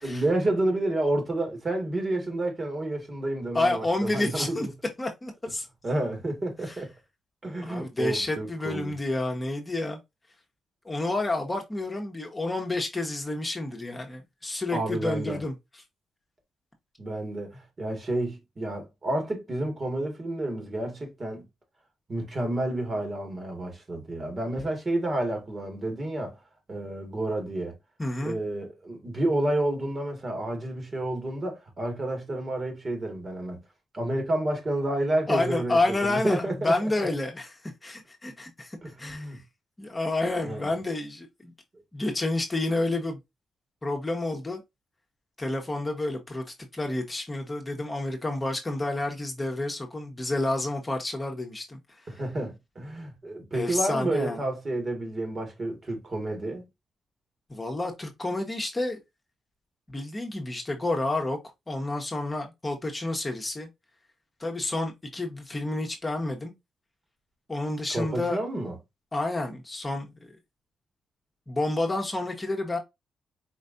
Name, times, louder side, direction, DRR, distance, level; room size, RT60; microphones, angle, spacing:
voice 1, 0.0-4.6 5.8-6.9 7.4-9.0 14.7-15.4 17.0-21.4 22.1-26.4 26.7-27.7 28.2-33.6 33.9-36.7 37.0-37.1 38.8-39.4 40.4-40.7 52.1-56.6 67.9-68.8, right 1 dB, 35° right, 2.0 m, -30 dB
voice 2, 3.5-4.7 5.0-5.7 6.7-6.8 7.6-10.0 10.8-15.5 28.0-28.4 35.3-37.5 37.8-39.4 39.8-41.5 41.9-43.2 43.8-44.6 45.4-46.4 46.7-52.1 53.5-54.4 57.5-59.0 59.9-61.4 61.7-63.7 64.4-66.5 67.5-68.4 69.1-70.3 71.5-72.8, left 2 dB, 20° left, 1.1 m, -29 dB
4.6 x 3.1 x 2.6 m
cardioid pair, 80°, 0 cm